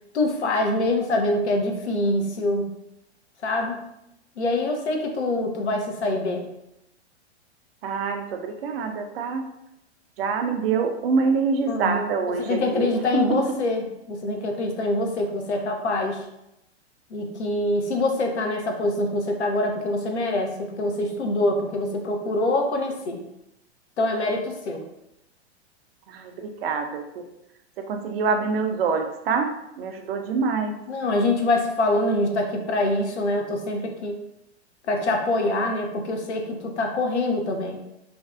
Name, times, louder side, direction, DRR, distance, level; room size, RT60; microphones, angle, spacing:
voice 1, 0.1-2.7 3.4-3.8 4.4-6.5 11.7-12.1 12.4-16.2 17.1-23.2 24.0-24.8 30.9-34.2 34.9-37.8, left 2 dB, 80° left, 3 dB, 0.6 m, -25 dB
voice 2, 7.8-9.5 10.2-12.9 13.1-13.6 26.1-27.2 27.8-30.8, right 4 dB, 60° right, 5 dB, 0.5 m, -25 dB
2.5 x 2.2 x 2.3 m, 0.85 s
figure-of-eight pair, 105°, 34 cm